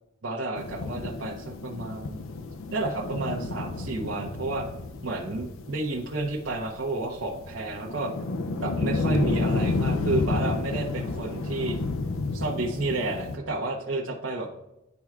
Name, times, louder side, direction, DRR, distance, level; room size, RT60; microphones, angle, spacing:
voice 1, 0.2-2.2 2.7-4.7 5.0-8.1 8.6-11.8 12.3-14.5, right 2 dB, 70° right, -4 dB, 0.8 m, -31 dB
sound 1, 0.6-13.4, left 3 dB, 85° left, 0.5 m, -31 dB
11.0 x 4.4 x 2.4 m, 0.88 s
head